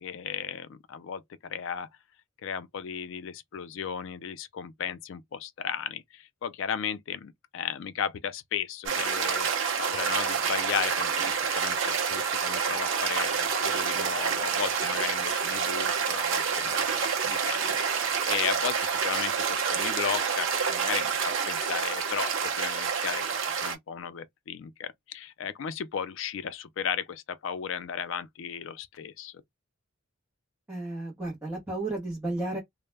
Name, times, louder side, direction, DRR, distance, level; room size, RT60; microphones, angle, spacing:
voice 1, 0.0-1.9 2.4-9.5 9.8-29.3, left 7 dB, 65° left, 0.4 m, -35 dB
sound 1, 8.9-23.8, right 6 dB, 65° right, 0.6 m, -28 dB
voice 2, 30.7-32.6, right 2 dB, 10° right, 0.7 m, -33 dB
2.1 x 2.0 x 3.2 m
head